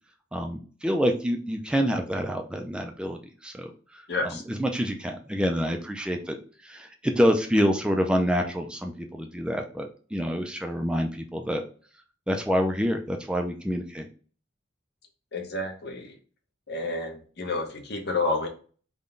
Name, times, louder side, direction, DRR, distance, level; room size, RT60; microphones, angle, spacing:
voice 1, 0.3-6.4 6.6-11.6 12.3-14.1, equal, 5° right, 3 dB, 0.3 m, -27 dB
voice 2, 4.1-4.4 15.3-16.1 16.7-18.5, left 2 dB, 55° left, 3 dB, 0.8 m, -30 dB
3.6 x 2.2 x 3.7 m, 0.40 s
head